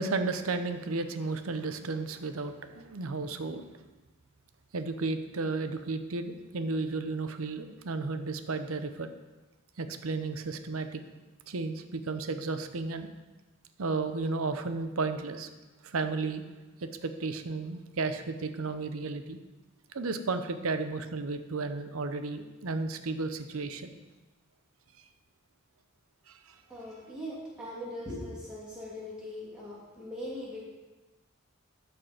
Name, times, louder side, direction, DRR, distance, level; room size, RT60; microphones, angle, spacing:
voice 1, 0.0-3.6 4.7-9.1 9.8-11.0 11.5-13.1 13.8-15.5 15.8-16.4 16.8-19.4 19.9-23.9 26.3-26.6, right 3 dB, 75° right, 9 dB, 0.7 m, -33 dB
voice 2, 26.7-30.6, left 1 dB, 5° right, -8 dB, 2.7 m, -40 dB
13.0 x 4.4 x 5.1 m, 1.2 s
head